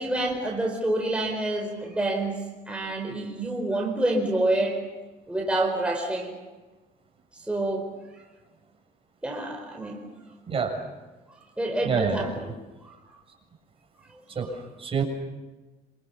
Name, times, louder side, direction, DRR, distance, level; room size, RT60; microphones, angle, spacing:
voice 1, 0.0-2.4 2.7-4.8 5.3-6.4 7.3-8.2 9.2-10.0 11.6-12.5 12.8-13.0 14.1-14.2, right 1 dB, 5° right, 1 dB, 4.7 m, -28 dB
voice 2, 10.5-10.8 11.8-12.3 14.3-15.0, right 5 dB, 35° right, 2 dB, 7.2 m, -27 dB
27.0 x 26.5 x 7.2 m, 1.2 s
cardioid pair, 110°, 17 cm